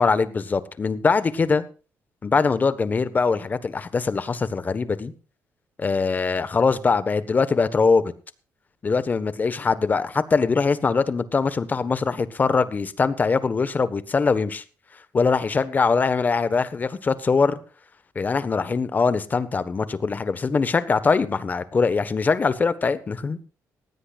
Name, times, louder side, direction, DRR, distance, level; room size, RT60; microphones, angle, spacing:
voice 1, 0.0-1.6 2.2-5.1 5.8-8.1 8.8-14.6 15.1-17.6 18.1-23.5, left 4 dB, 30° left, 1.4 m, -22 dB
19.0 x 16.5 x 2.5 m
cardioid pair, 135°, 6 cm